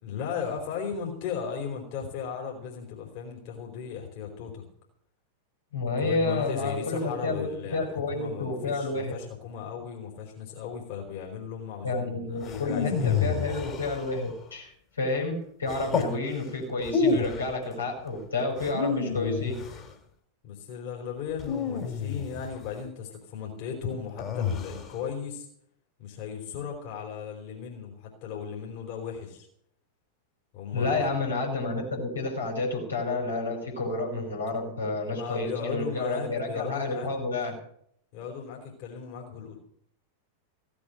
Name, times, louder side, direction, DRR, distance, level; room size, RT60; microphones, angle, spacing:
voice 1, 0.0-4.6 5.8-13.5 20.4-25.5 26.0-29.5 30.5-31.1 35.0-37.1 38.1-39.6, left 7 dB, 45° left, -1 dB, 4.5 m, -36 dB
voice 2, 5.7-7.5 7.7-9.1 11.8-12.9 13.2-14.7 15.0-19.6 30.7-37.6, left 3 dB, 75° left, -1 dB, 5.3 m, -30 dB
sound 1, 12.4-14.4 15.7-16.2 16.8-17.5 18.6-19.9 21.4-22.6 24.2-25.0, left 5 dB, 30° left, 3.1 m, -29 dB
16.5 x 8.6 x 7.9 m, 0.66 s
figure-of-eight pair, 90°, 0 cm